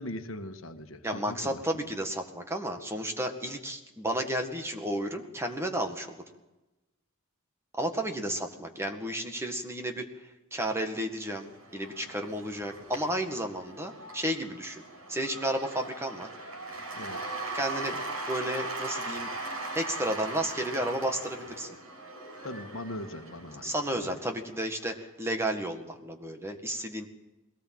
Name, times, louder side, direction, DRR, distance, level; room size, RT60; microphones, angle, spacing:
voice 1, 0.0-1.9 8.2-8.4 17.0-17.2 22.4-24.2, left 1 dB, 70° left, 7 dB, 1.6 m, -41 dB
voice 2, 1.0-6.2 7.8-10.1 10.5-14.8 15.1-16.3 17.5-18.0 18.3-19.3 19.7-21.8 23.6-27.1, right 1 dB, 10° right, 5 dB, 1.9 m, -32 dB
Cheering / Applause / Crowd, 11.2-24.6, right 2 dB, 90° right, 6.6 m, -39 dB
21.5 x 18.5 x 7.8 m, 1.0 s
head